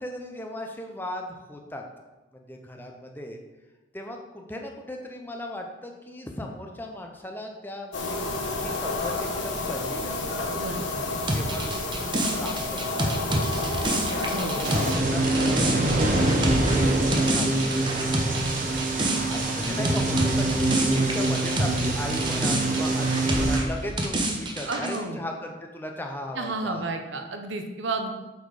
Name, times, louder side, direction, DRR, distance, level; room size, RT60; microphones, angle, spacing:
voice 1, 0.0-1.8 2.3-3.4 3.9-8.2 8.6-10.4 11.3-18.3 19.3-26.8, left 1 dB, 10° left, 2 dB, 0.6 m, -37 dB
sound 1, 7.9-14.9, left 2 dB, 70° left, 1.2 m, -30 dB
voice 2, 10.6-11.0 14.2-14.7 19.4-19.5 24.7-25.2 26.3-28.1, right 2 dB, 70° right, 5 dB, 0.8 m, -32 dB
sound 2, 11.3-21.8 22.1-25.0, right 1 dB, 25° right, 0.8 m, -28 dB
sound 3, 14.6-23.6, right 2 dB, 40° right, 1.1 m, -24 dB
8.1 x 4.4 x 4.9 m, 1.1 s
head